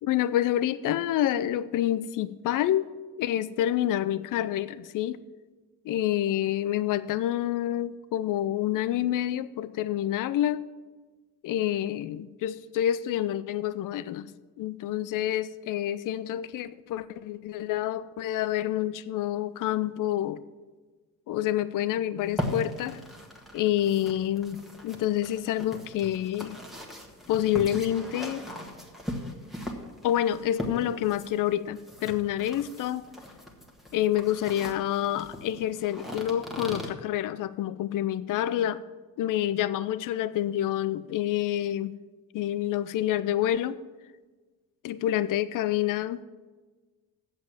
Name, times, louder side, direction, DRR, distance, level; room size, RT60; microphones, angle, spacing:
voice 1, 0.0-2.9 3.2-5.2 5.8-10.6 11.4-14.3 14.6-20.4 21.3-23.0 23.5-26.6 27.3-28.4 30.0-33.1 33.9-38.8 39.2-41.9 42.3-43.8 44.8-46.2, left 12 dB, 40° left, 17 dB, 0.5 m, -28 dB
sound 1, 22.2-36.9, left 1 dB, ahead, 1.7 m, -39 dB
7.8 x 7.5 x 7.5 m, 1.3 s
figure-of-eight pair, 50°, 49 cm